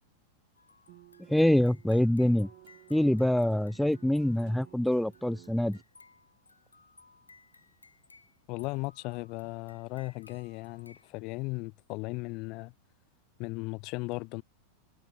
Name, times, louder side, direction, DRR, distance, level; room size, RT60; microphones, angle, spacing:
sound 1, 0.6-11.1, left 3 dB, 80° left, 3.8 m, -60 dB
sound 2, 0.9-5.8, right 32 dB, 45° right, 2.0 m, -54 dB
voice 1, 1.3-2.5 2.9-5.8, left 1 dB, ahead, 0.6 m, -25 dB
voice 2, 8.5-12.7 13.4-14.4, left 26 dB, 40° left, 0.9 m, -36 dB
figure-of-eight pair, 90°, 0 cm